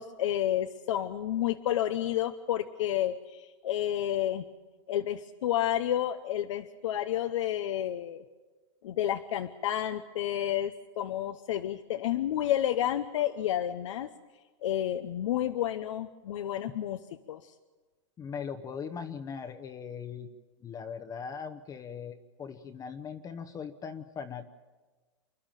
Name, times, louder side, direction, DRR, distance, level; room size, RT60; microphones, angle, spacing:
voice 1, 0.0-4.4 4.9-8.2 8.8-14.1 14.6-17.0 17.3-17.5, left 11 dB, 75° left, 7 dB, 0.9 m, -30 dB
voice 2, 18.2-20.3 20.6-24.5, left 6 dB, 20° left, 8 dB, 0.9 m, -40 dB
28.0 x 11.0 x 9.0 m, 1.3 s
supercardioid pair, 135°, 16 cm